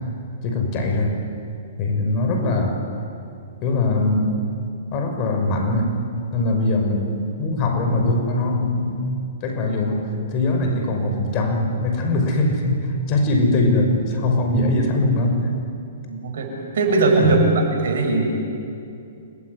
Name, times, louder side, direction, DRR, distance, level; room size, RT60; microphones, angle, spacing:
voice 1, 0.4-1.2 1.8-2.8 3.6-4.3 4.9-5.9 6.3-15.5 17.2-17.3, left 2 dB, 35° left, 4 dB, 6.0 m, -21 dB
voice 2, 16.1-16.5 16.7-18.3, right 3 dB, 70° right, 2 dB, 7.7 m, -19 dB
29.0 x 20.0 x 9.8 m, 2.6 s
hypercardioid pair, 130°, 0 cm